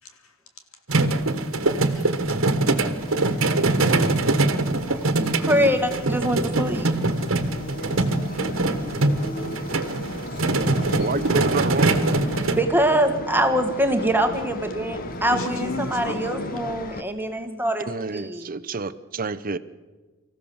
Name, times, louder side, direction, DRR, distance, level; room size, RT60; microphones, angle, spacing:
voice 1, 0.0-0.3 1.6-2.4 3.2-4.1 10.0-10.7 15.3-16.7, left 2 dB, 90° left, 2.8 m, -36 dB
sound 1, 0.9-12.6, right 2 dB, 70° right, 1.5 m, -23 dB
Bowed string instrument, 2.6-6.5, equal, 60° left, 4.4 m, -46 dB
sound 2, 2.9-17.0, left 2 dB, 45° left, 1.3 m, -36 dB
voice 2, 5.4-6.9 12.6-17.9 18.1-18.5, right 1 dB, 10° right, 1.7 m, -23 dB
voice 3, 11.0-12.2 17.9-19.6, right 4 dB, 40° right, 0.7 m, -29 dB
25.0 x 15.0 x 7.1 m
head